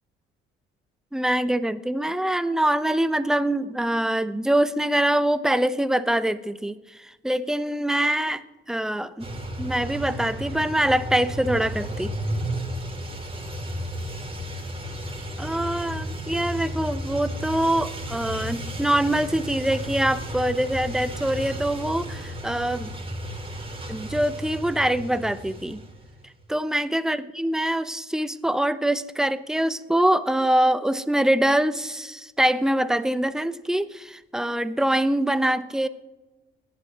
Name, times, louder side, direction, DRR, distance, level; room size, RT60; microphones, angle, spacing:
voice 1, 1.1-8.4 8.7-9.3 9.6-12.1 15.4-22.9 23.9-25.8 26.5-35.9, right 1 dB, ahead, 13 dB, 0.8 m, -24 dB
sound 1, 9.2-26.3, equal, 15° right, 2.9 m, -33 dB
27.0 x 11.0 x 3.0 m, 1.2 s
hypercardioid pair, 50°, 31 cm